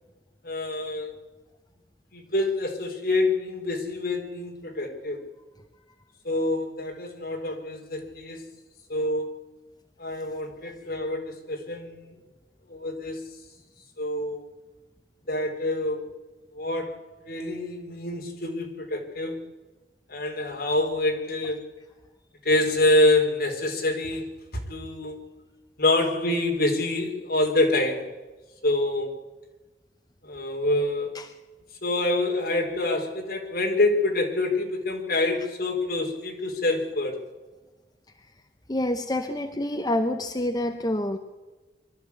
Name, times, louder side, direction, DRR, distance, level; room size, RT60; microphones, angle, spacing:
voice 1, 0.4-1.1 2.1-5.2 6.2-8.4 8.9-9.3 10.0-12.2 12.7-13.2 14.0-14.4 15.3-16.0 16.5-17.0 17.2-19.4 20.1-21.7 22.4-24.3 24.7-25.2 25.8-28.1 28.6-29.1 30.2-31.1 31.8-37.2, left 2 dB, 60° left, 1 dB, 4.1 m, -26 dB
voice 2, 38.7-41.2, left 1 dB, 20° left, 5 dB, 0.9 m, -27 dB
23.5 x 13.0 x 8.5 m, 1.2 s
head